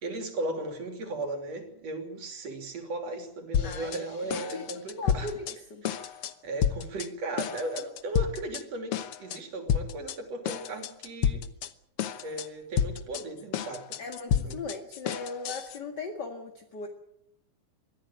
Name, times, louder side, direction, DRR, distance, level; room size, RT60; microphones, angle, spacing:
voice 1, 0.0-5.3 5.8-11.4 12.2-14.0 14.4-14.6, right 2 dB, 55° right, 5 dB, 4.2 m, -36 dB
sound 1, 3.5-4.0 4.3-5.6 5.8-6.3 6.6-7.1 7.4-8.6 8.9-9.4 9.7-10.2 10.5-11.7 12.0-12.5 12.8-15.8, left 8 dB, 60° left, 1.5 m, -30 dB
voice 2, 3.6-3.9 4.3-4.6 5.0-5.8 14.0-16.9, left 3 dB, 40° left, 4 dB, 2.2 m, -38 dB
23.0 x 15.5 x 9.0 m, 0.76 s
omnidirectional pair, 3.5 m